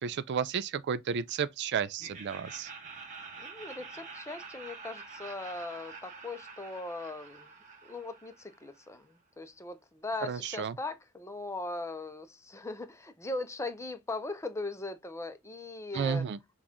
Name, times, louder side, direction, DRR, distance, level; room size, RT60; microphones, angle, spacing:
voice 1, 0.0-2.7 10.2-10.8 15.9-16.4, right 6 dB, 55° right, 0.4 m, -32 dB
Laughter, 2.0-8.9, right 4 dB, 35° right, 1.5 m, -47 dB
voice 2, 3.4-7.5 7.8-16.2, left 2 dB, 15° left, 0.6 m, -39 dB
5.9 x 2.4 x 3.6 m
head